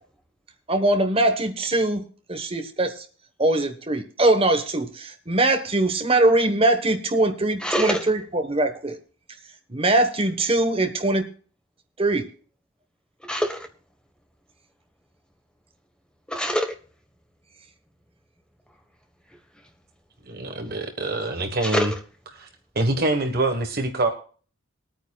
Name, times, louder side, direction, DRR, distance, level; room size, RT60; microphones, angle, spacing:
voice 1, 0.7-3.0 3.4-9.0 9.7-11.3 12.0-12.3, right 2 dB, 25° right, 1.2 m, -22 dB
voice 2, 7.6-8.1 13.2-13.7 16.3-16.8 19.3-19.6 21.6-22.0, equal, 5° left, 1.2 m, -26 dB
voice 3, 20.2-21.9 22.4-22.5 22.7-24.1, right 2 dB, 45° right, 1.3 m, -25 dB
21.0 x 9.2 x 2.3 m
head